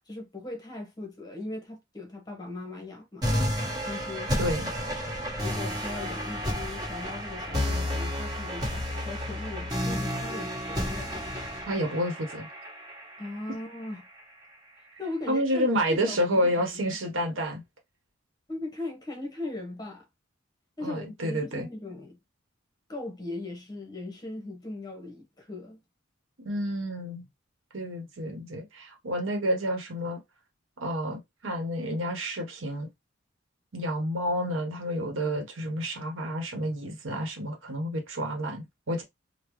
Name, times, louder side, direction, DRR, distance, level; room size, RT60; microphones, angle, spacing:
voice 1, 0.1-3.3 3.9-4.3 5.4-11.2 13.2-14.1 15.0-15.7 16.0-16.6 18.5-20.0 20.8-22.2 22.9-25.8, left 2 dB, 20° left, 1.1 m, -39 dB
sound 1, 3.2-14.2, equal, 20° right, 1.5 m, -31 dB
voice 2, 4.4-4.7 11.7-12.5 15.3-17.6 20.8-21.7 26.4-27.2 27.7-30.2 30.8-32.9 33.7-39.0, equal, 80° right, 1.1 m, -29 dB
3.8 x 2.2 x 3.0 m
head